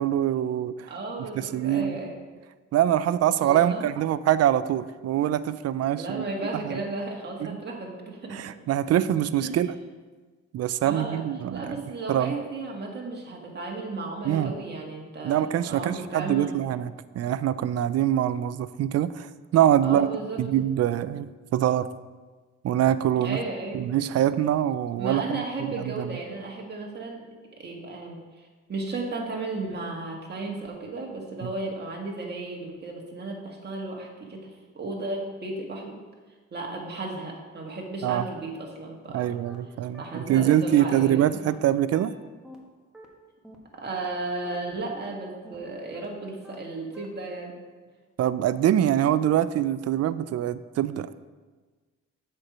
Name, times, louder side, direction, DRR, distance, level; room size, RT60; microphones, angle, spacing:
voice 1, 0.0-0.9 1.4-2.0 2.7-6.3 6.5-6.8 7.5-7.6 8.3-9.7 10.5-11.8 12.1-12.3 14.2-14.5 15.2-19.3 19.5-20.1 20.4-21.9 22.6-23.4 23.7-26.2 31.4-31.5 38.0-38.3 39.1-42.1 48.2-51.1, right 11 dB, 55° right, 15 dB, 0.4 m, -24 dB
voice 2, 0.9-2.2 3.4-3.9 5.9-8.5 9.4-9.6 10.8-11.2 11.5-16.5 19.8-20.4 23.2-23.8 25.0-27.2 27.5-36.0 36.5-39.3 40.0-41.3 43.7-47.5, right 2 dB, 35° right, -1 dB, 1.8 m, -34 dB
sound 1, 39.0-39.1 39.4-39.5 39.9-40.0 40.4-40.5 40.9-41.0 41.4-41.5 41.9-42.0 42.4-42.5 42.9-43.0 43.4-43.6 43.9-44.0 44.4-44.5 44.9-45.0 45.4-45.6 45.9-46.0 46.4-46.5 46.9-47.0, equal, ahead, 1.3 m, -47 dB
7.8 x 4.5 x 6.0 m, 1.4 s
cardioid pair, 90°, 30 cm